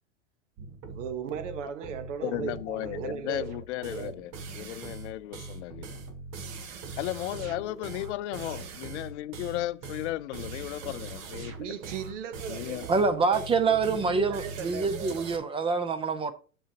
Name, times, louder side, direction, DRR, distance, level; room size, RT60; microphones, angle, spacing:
sound 1, 0.6-15.4, right 4 dB, 40° right, 1.4 m, -41 dB
voice 1, 0.9-3.5 3.9-4.3 8.5-8.6 11.6-15.3, right 7 dB, 65° right, 1.2 m, -37 dB
voice 2, 2.2-6.0 7.0-11.5 12.5-12.9, left 15 dB, 60° left, 0.6 m, -35 dB
voice 3, 12.9-16.3, right 4 dB, 15° right, 0.5 m, -26 dB
7.4 x 6.9 x 2.9 m
hypercardioid pair, 110°, 39 cm